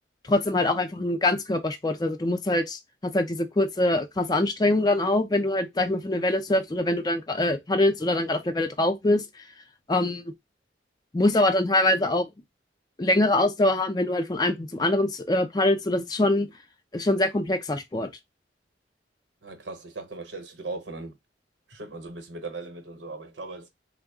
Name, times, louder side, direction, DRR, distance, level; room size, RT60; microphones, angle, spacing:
voice 1, 0.3-9.2 9.9-10.2 11.1-12.3 13.0-16.5 16.9-18.1, left 1 dB, 20° left, 0.4 m, -24 dB
voice 2, 19.4-21.1 21.7-23.7, right 3 dB, 90° right, 0.9 m, -38 dB
3.5 x 2.0 x 3.4 m
head